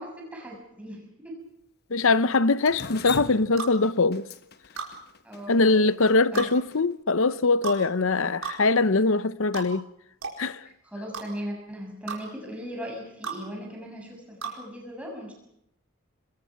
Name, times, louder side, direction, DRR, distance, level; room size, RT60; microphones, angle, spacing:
voice 1, 0.0-1.4 5.2-5.8 6.3-6.5 10.8-15.3, equal, 5° right, 6.6 m, -38 dB
voice 2, 1.9-4.3 5.5-9.9 10.4-10.6, left 3 dB, 70° left, 0.8 m, -22 dB
Drip, 2.7-6.8, left 6 dB, 45° left, 1.2 m, -38 dB
sound 1, 3.6-3.8 4.8-4.9 6.3-6.5 7.6-7.8 8.4-8.6 9.5-9.7 10.2-10.4 11.1-11.3 12.1-12.2 13.2-13.4 14.4-14.6, right 6 dB, 75° right, 4.7 m, -33 dB
27.5 x 21.5 x 5.8 m
head